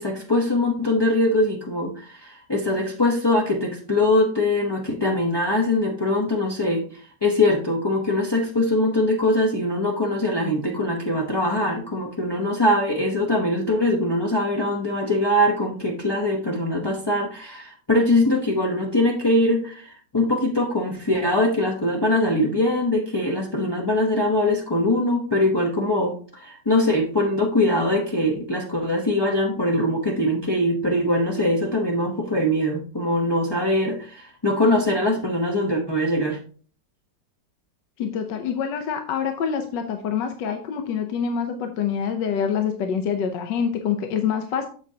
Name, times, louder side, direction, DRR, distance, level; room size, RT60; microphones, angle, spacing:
voice 1, 0.0-36.4, left 1 dB, 35° left, -1 dB, 0.4 m, -22 dB
voice 2, 38.0-44.7, left 7 dB, 75° left, 6 dB, 1.4 m, -26 dB
7.7 x 7.3 x 2.8 m, 0.42 s
omnidirectional pair, 2.0 m